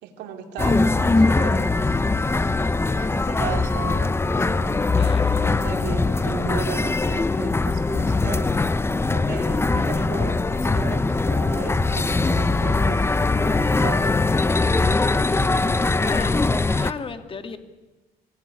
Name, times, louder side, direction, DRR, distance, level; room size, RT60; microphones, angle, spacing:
voice 1, 0.0-1.7 2.9-4.8 5.4-8.5 9.1-14.1, right 8 dB, 90° right, 4 dB, 2.8 m, -36 dB
sound 1, 0.6-16.9, left 3 dB, 15° left, 0.8 m, -21 dB
voice 2, 5.0-5.4 16.0-17.6, left 5 dB, 30° left, 8 dB, 2.3 m, -35 dB
24.5 x 18.0 x 9.7 m, 1.2 s
cardioid pair, 110°, 17 cm